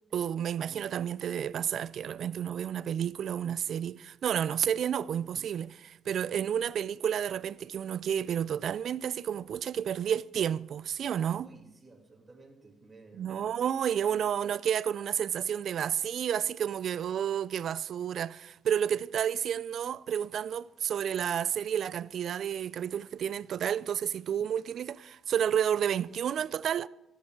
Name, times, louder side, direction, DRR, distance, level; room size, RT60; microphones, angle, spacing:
voice 1, 0.1-11.5 13.1-26.9, right 9 dB, 65° right, 0.3 m, -31 dB
voice 2, 11.4-13.5, right 3 dB, 25° right, 2.5 m, -55 dB
13.5 x 10.0 x 4.6 m
cardioid pair, 90°, 0 cm